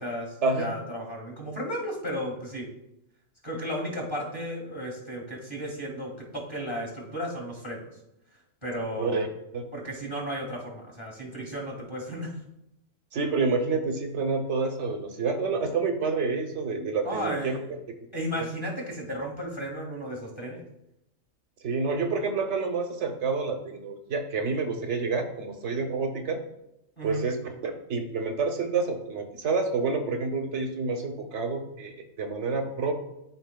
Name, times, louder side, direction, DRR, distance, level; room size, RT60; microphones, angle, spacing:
voice 1, 0.0-2.7 3.4-7.8 8.6-9.3 9.7-12.3 17.0-17.7 18.1-20.6 27.0-27.2, equal, 20° left, -1 dB, 1.9 m, -34 dB
voice 2, 13.1-17.8 21.6-26.4 27.0-32.9, right 4 dB, 60° right, 5 dB, 1.0 m, -28 dB
12.5 x 4.3 x 2.2 m, 0.84 s
omnidirectional pair, 1.4 m